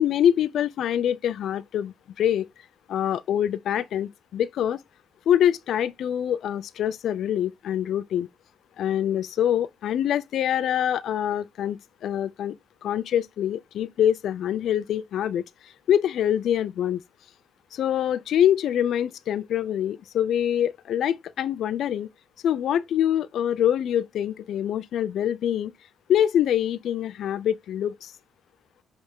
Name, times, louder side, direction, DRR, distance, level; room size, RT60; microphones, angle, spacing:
voice 1, 0.0-2.5 2.9-4.8 5.3-8.3 8.8-12.6 12.8-15.4 15.9-17.0 17.7-22.1 22.4-25.7 26.1-28.1, left 10 dB, 70° left, 0.4 m, -25 dB
9.7 x 3.5 x 3.6 m
cardioid pair, 90°, 0 cm